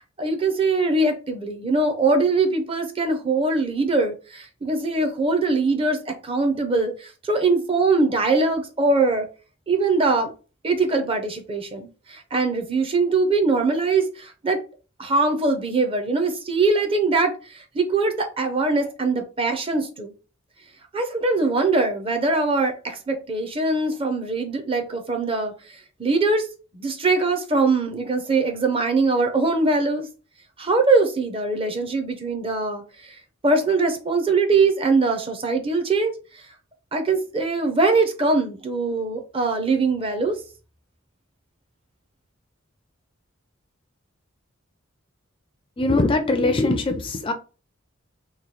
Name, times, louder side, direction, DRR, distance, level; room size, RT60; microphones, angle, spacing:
voice 1, 0.2-9.3 9.7-10.3 10.6-14.6 15.0-20.1 20.9-25.5 26.0-26.5 26.7-30.1 30.6-36.1 36.9-40.4, right 3 dB, 25° right, 0.5 m, -22 dB
voice 2, 45.8-47.3, left 2 dB, 25° left, 0.4 m, -21 dB
3.0 x 2.2 x 3.9 m
head